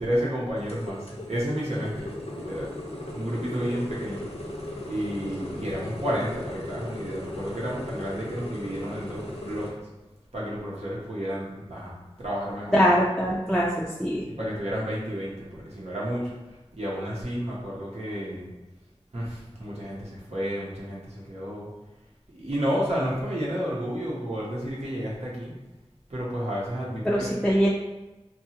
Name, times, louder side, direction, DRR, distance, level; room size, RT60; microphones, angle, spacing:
voice 1, 0.0-2.7 3.1-4.3 4.9-9.7 10.3-12.8 14.3-16.3 16.7-18.5 19.1-21.7 22.4-25.5 26.1-27.4, equal, 90° right, -6 dB, 0.8 m, -31 dB
sound 1, 0.6-9.7, left 1 dB, 75° left, 0.5 m, -37 dB
voice 2, 12.7-14.3 27.0-27.7, equal, 5° left, -5 dB, 0.4 m, -22 dB
2.7 x 2.3 x 2.8 m, 1.1 s
wide cardioid pair, 45°, 11 cm